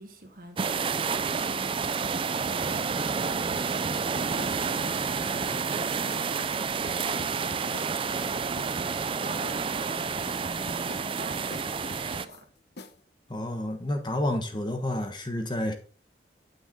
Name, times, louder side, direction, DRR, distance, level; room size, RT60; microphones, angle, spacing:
voice 1, 0.0-1.9 2.4-8.7 9.2-12.5, right 1 dB, 50° right, 1.9 m, -45 dB
sound 1, 0.6-12.3, right 5 dB, 30° right, 0.4 m, -29 dB
sound 2, 1.8-4.9 5.2-5.8 6.1-6.2 6.5-8.3 8.6-9.1 9.4-12.4 12.8-13.0, left 2 dB, 65° left, 1.0 m, -45 dB
voice 2, 13.3-15.7, left 1 dB, 25° left, 1.1 m, -30 dB
8.8 x 6.4 x 3.8 m
head